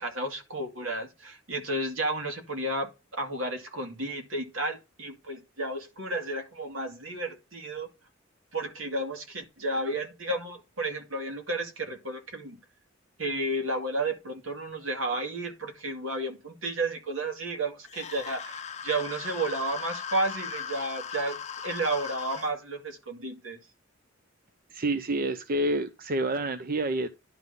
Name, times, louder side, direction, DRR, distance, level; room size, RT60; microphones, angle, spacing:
voice 1, 0.0-7.9 8.5-12.6 13.2-23.6, right 2 dB, 80° right, 2.2 m, -32 dB
sound 1, 17.9-22.5, left 7 dB, 35° left, 0.6 m, -38 dB
voice 2, 24.7-27.1, right 1 dB, 45° right, 0.6 m, -28 dB
11.0 x 3.7 x 5.3 m
head